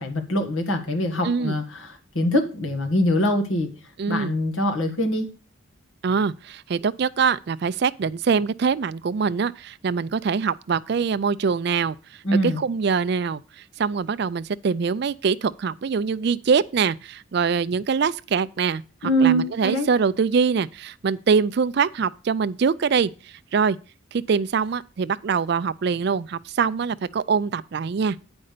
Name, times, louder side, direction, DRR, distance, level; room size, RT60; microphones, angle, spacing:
voice 1, 0.0-3.7 4.1-5.3 12.2-12.6 19.0-19.9, equal, 70° left, 1.7 m, -23 dB
voice 2, 1.2-1.6 4.0-4.3 6.0-12.0 12.4-13.4 13.8-23.8 24.1-28.2, right 5 dB, 50° right, 0.3 m, -23 dB
8.7 x 5.3 x 6.6 m
head